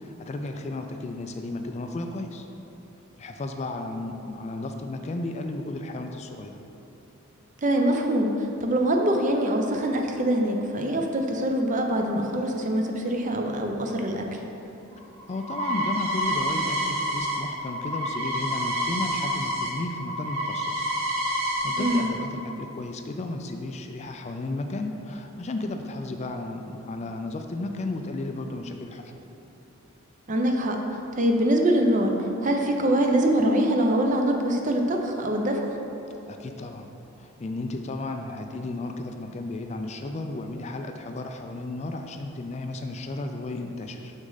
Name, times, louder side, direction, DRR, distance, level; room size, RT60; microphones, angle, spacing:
voice 1, 0.0-2.5 3.2-6.5 15.3-20.9 21.2-29.1 36.3-36.9 37.2-44.1, left 2 dB, 30° left, 5 dB, 0.3 m, -34 dB
voice 2, 7.6-14.2 21.8-22.1 30.3-30.8 31.2-32.1 32.4-35.6, right 1 dB, 35° right, 2 dB, 0.6 m, -24 dB
sound 1, 14.9-19.7 20.0-22.0, equal, 85° right, 1.3 m, -28 dB
6.4 x 6.2 x 3.9 m, 3.0 s
head